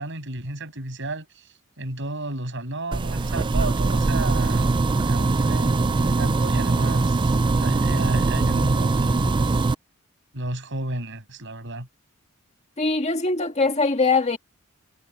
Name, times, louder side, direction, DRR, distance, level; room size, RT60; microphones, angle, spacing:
voice 1, 0.0-9.7 10.3-11.9, right 2 dB, 60° right, 7.5 m, -33 dB
sound 1, 2.9-9.7, right 3 dB, 20° right, 0.3 m, -21 dB
voice 2, 12.8-14.4, left 3 dB, 30° left, 2.0 m, -22 dB
head